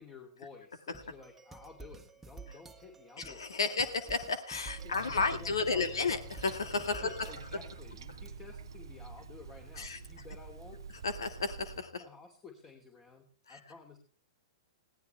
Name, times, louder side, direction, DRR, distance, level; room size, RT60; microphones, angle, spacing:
voice 1, 0.0-4.1 4.8-6.1 7.0-10.8 12.0-14.0, left 5 dB, 20° left, 4 dB, 3.0 m, -53 dB
sound 1, 0.9-7.8, right 4 dB, 10° right, 1.5 m, -52 dB
voice 2, 3.2-7.1 9.8-10.0 11.0-12.0 13.5-13.6, left 4 dB, 75° left, 11 dB, 2.0 m, -32 dB
Toilet flush, 4.6-11.8, right 7 dB, 70° right, 0.7 m, -47 dB
sound 2, 4.9-12.0, left 7 dB, 60° left, 1.6 m, -54 dB
21.0 x 17.0 x 3.4 m, 0.39 s
hypercardioid pair, 110°, 2 cm